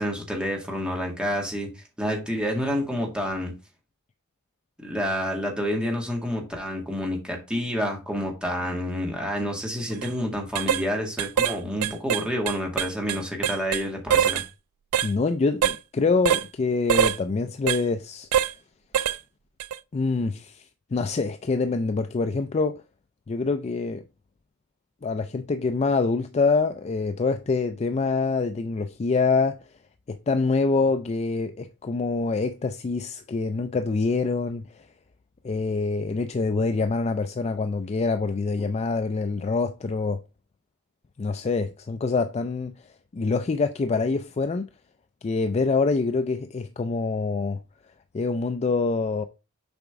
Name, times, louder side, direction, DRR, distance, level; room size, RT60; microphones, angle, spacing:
voice 1, 0.0-1.7 2.0-3.5 4.8-14.4, equal, 5° right, 1.9 m, -28 dB
sound 1, 9.9-10.1 10.5-10.8 11.2-11.6 11.8-13.8 14.1-14.5 14.9-15.1 15.6-15.8 16.3-16.5 16.9-17.2 17.7-17.8 18.3-18.5 18.9-19.2 19.6-19.8, right 9 dB, 80° right, 0.4 m, -23 dB
voice 2, 15.0-18.3 19.9-22.8 23.3-24.0 25.0-29.6 30.1-34.9 35.4-40.2 41.2-44.7 45.2-47.6 48.1-49.2, left 4 dB, 30° left, 0.4 m, -25 dB
6.9 x 4.9 x 3.6 m
head